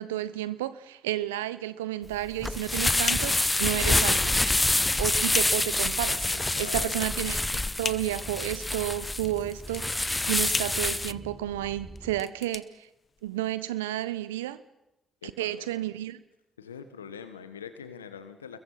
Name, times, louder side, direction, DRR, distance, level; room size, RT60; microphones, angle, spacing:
voice 1, 0.0-4.4 5.0-6.3 6.6-12.7 13.2-14.6 15.4-16.2, right 14 dB, 85° right, 0.8 m, -31 dB
sound 1, 2.1-11.1, left 2 dB, 15° left, 0.8 m, -26 dB
sound 2, 2.2-13.5, left 5 dB, 45° left, 1.4 m, -39 dB
sound 3, 3.8-12.2, right 1 dB, 10° right, 5.2 m, -44 dB
voice 2, 6.3-7.1 15.2-15.9 16.6-18.6, left 7 dB, 90° left, 1.5 m, -43 dB
29.0 x 22.0 x 5.7 m
hypercardioid pair, 40°, 0 cm